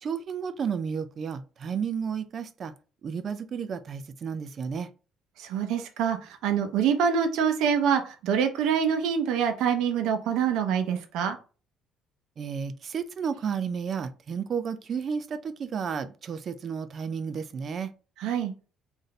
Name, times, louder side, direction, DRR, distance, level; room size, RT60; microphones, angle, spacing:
voice 1, 0.0-2.7 3.0-4.9 12.4-17.9, right 6 dB, 40° right, 0.4 m, -32 dB
voice 2, 5.4-11.4 18.2-18.5, right 7 dB, 80° right, 0.7 m, -25 dB
4.0 x 2.6 x 3.2 m
cardioid pair, 140°, 0 cm